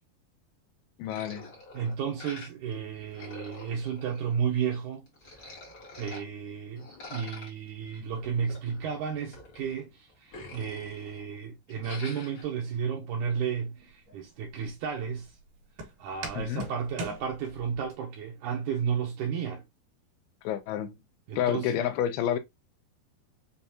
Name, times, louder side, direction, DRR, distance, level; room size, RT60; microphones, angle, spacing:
voice 1, 1.0-1.5 16.3-16.7 20.4-21.0 21.4-22.4, left 10 dB, 85° left, 2.5 m, -29 dB
sound 1, 1.1-2.7 3.0-4.6 5.1-6.2 6.8-9.8 10.1-11.3 11.7-12.4, left 3 dB, 50° left, 1.2 m, -47 dB
voice 2, 1.7-5.5 6.0-15.4 16.0-19.6 21.3-21.8, right 7 dB, 85° right, 1.7 m, -33 dB
Walk footsteps, 13.3-17.9, right 2 dB, 60° right, 3.1 m, -43 dB
6.5 x 2.3 x 2.7 m
omnidirectional pair, 4.3 m